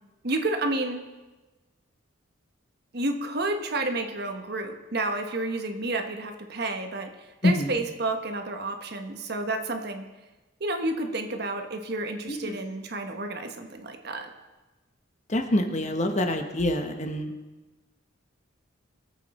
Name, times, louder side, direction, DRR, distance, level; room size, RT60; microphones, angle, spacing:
voice 1, 0.2-1.0 2.9-7.1 7.4-10.1 10.6-14.3, right 2 dB, 50° right, 6 dB, 1.2 m, -30 dB
voice 2, 7.4-7.7 12.3-12.5 15.3-17.3, left 1 dB, 35° left, 5 dB, 1.1 m, -26 dB
22.5 x 8.1 x 4.3 m, 1.2 s
head